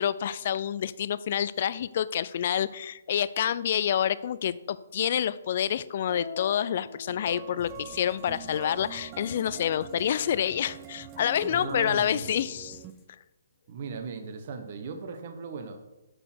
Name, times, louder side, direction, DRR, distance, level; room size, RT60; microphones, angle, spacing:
voice 1, 0.0-12.8, left 9 dB, 45° left, 16 dB, 0.4 m, -28 dB
sound 1, 6.1-7.9, left 3 dB, 75° right, 2.8 m, -43 dB
sound 2, 7.1-12.9, right 10 dB, 25° right, 0.5 m, -45 dB
sound 3, 7.6-13.1, left 1 dB, 20° left, 1.2 m, -53 dB
voice 2, 11.5-12.3 13.7-15.8, right 5 dB, 45° right, 7 dB, 1.2 m, -38 dB
7.9 x 6.0 x 6.2 m, 1.0 s
figure-of-eight pair, 135°, 0 cm